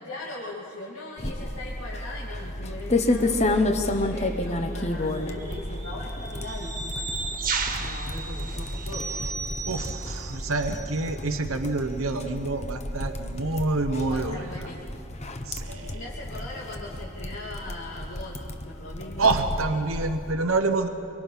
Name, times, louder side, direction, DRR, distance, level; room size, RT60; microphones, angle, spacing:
voice 1, 0.0-7.1 7.8-9.1 13.9-14.8 15.8-18.4 18.6-19.3, left 2 dB, 70° left, -5 dB, 2.7 m, -39 dB
sound 1, 1.2-20.3, left 1 dB, 30° left, 1.1 m, -31 dB
sound 2, 3.9-4.1 5.1-9.3, right 4 dB, 40° right, 1.6 m, -35 dB
sound 3, 6.4-11.5 11.9-12.0, right 4 dB, 15° right, 0.8 m, -39 dB
voice 2, 9.7-14.5 15.4-16.0 19.2-20.9, right 3 dB, 85° right, 7 dB, 1.0 m, -27 dB
24.0 x 23.5 x 5.7 m, 2.7 s
head